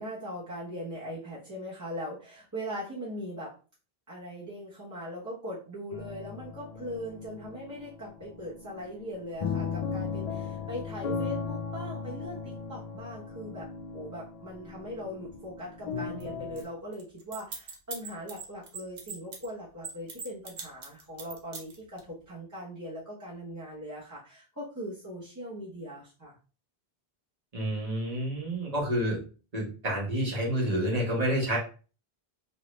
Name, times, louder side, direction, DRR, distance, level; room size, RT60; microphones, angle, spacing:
voice 1, 0.0-3.5 4.1-13.7 13.9-26.3, equal, 20° right, -8 dB, 0.9 m, -40 dB
sound 1, 5.9-16.6, left 5 dB, 50° left, 0.5 m, -37 dB
sound 2, 16.2-16.3 16.6-16.7 16.9-19.5 19.8-22.0, right 5 dB, 75° right, 1.1 m, -40 dB
voice 2, 27.5-29.2 29.5-31.6, right 1 dB, 40° right, -2 dB, 1.3 m, -29 dB
3.2 x 2.7 x 3.0 m, 0.36 s
omnidirectional pair, 1.0 m